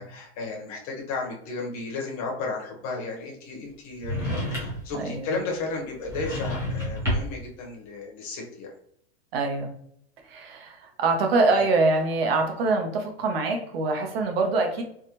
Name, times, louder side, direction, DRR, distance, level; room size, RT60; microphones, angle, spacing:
voice 1, 0.0-8.7 11.5-11.7, left 3 dB, 35° left, 0 dB, 0.7 m, -34 dB
sound 1, 4.0-4.9 6.0-7.5, equal, 10° right, 0.8 m, -29 dB
voice 2, 4.9-5.3 9.3-9.7 10.2-14.8, right 3 dB, 65° right, 4 dB, 0.8 m, -24 dB
3.5 x 2.1 x 2.8 m, 0.68 s
supercardioid pair, 175°, 32 cm